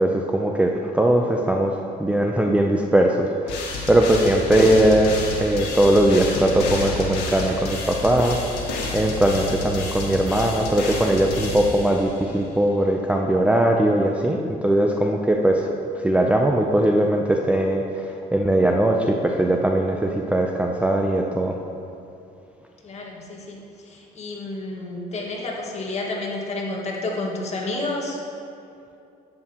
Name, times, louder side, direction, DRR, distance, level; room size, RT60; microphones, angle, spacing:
voice 1, 0.0-8.4 8.9-15.7 15.9-21.6, right 1 dB, 5° right, 1 dB, 0.5 m, -20 dB
sound 1, 3.5-12.3, left 2 dB, 90° left, 1.6 m, -30 dB
voice 2, 22.8-28.2, left 2 dB, 40° left, -2 dB, 1.8 m, -30 dB
11.0 x 8.7 x 3.0 m, 2.7 s
cardioid pair, 110°, 17 cm